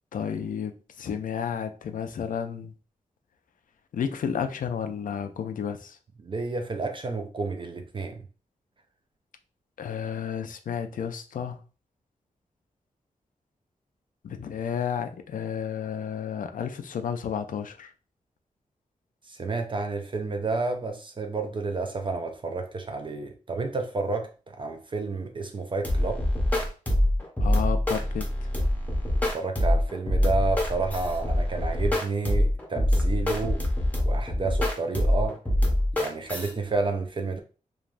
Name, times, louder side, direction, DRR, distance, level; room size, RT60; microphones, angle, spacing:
voice 1, 0.1-2.7 3.9-6.0 9.8-11.6 14.2-17.9 27.4-28.5, left 7 dB, 80° left, 0.4 m, -32 dB
voice 2, 6.2-8.2 19.3-26.2 29.1-33.6 34.0-35.4 35.9-37.4, right 3 dB, 35° right, 0.4 m, -30 dB
sound 1, 25.8-36.5, left 1 dB, 10° left, 0.7 m, -25 dB
3.2 x 2.2 x 2.5 m
wide cardioid pair, 130°, 14 cm